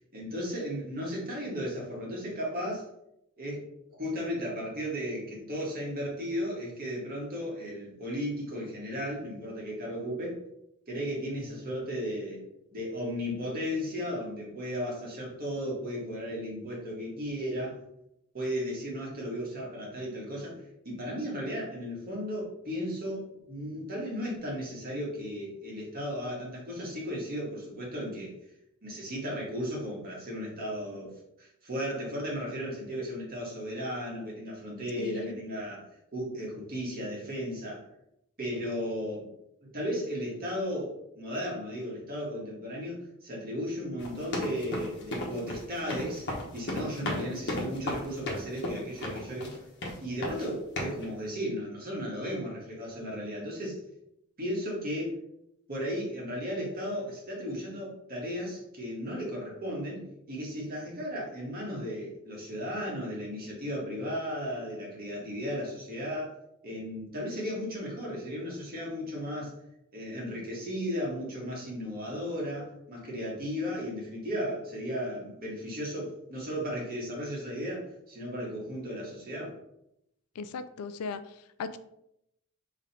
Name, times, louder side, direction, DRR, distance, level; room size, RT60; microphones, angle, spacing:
voice 1, 0.1-2.9 3.4-3.6 4.0-10.4 10.9-12.4 12.7-17.8 18.3-20.5 20.8-28.3 28.8-31.1 31.4-35.8 36.1-37.8 38.4-39.3 39.7-46.3 46.5-49.5 50.0-53.8 54.4-55.2 55.7-66.4 66.6-69.5 69.9-79.5, equal, 40° right, -3 dB, 1.7 m, -35 dB
voice 2, 35.0-35.3 47.0-47.3 80.4-81.2 81.6-81.8, left 5 dB, 80° left, 12 dB, 0.4 m, -37 dB
sound 1, 44.0-49.6 49.8-50.5 50.8-51.0, left 1 dB, 55° left, 1.1 m, -34 dB
3.8 x 3.2 x 4.3 m, 0.79 s
head